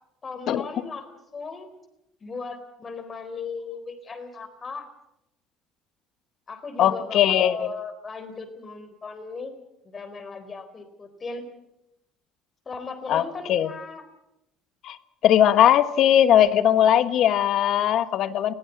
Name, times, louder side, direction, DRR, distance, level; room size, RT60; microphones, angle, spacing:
voice 1, 0.2-1.7 2.2-4.9 6.5-9.5 9.8-11.4 12.7-14.0, left 4 dB, 30° left, 9 dB, 4.0 m, -37 dB
voice 2, 6.8-7.7 13.1-13.2 13.5-13.7 14.8-15.0 15.2-18.5, left 10 dB, 60° left, 13 dB, 1.2 m, -19 dB
20.5 x 15.5 x 8.5 m, 0.85 s
cardioid pair, 110°, 0 cm